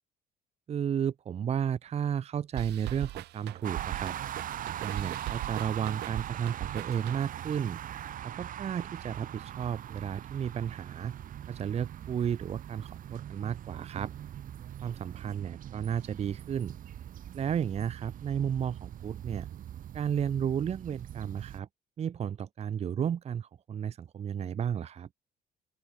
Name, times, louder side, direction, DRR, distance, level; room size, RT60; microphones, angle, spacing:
voice 1, 0.7-4.2 4.8-7.8 8.2-11.1 11.5-14.1 14.8-16.8 17.3-19.5 19.9-21.7 22.0-25.1, right 8 dB, 40° right, 0.8 m, -33 dB
sound 1, 2.6-7.5, right 16 dB, 80° right, 3.6 m, -40 dB
sound 2, 3.6-21.6, right 11 dB, 55° right, 1.4 m, -41 dB
open air
cardioid pair, 110°, 17 cm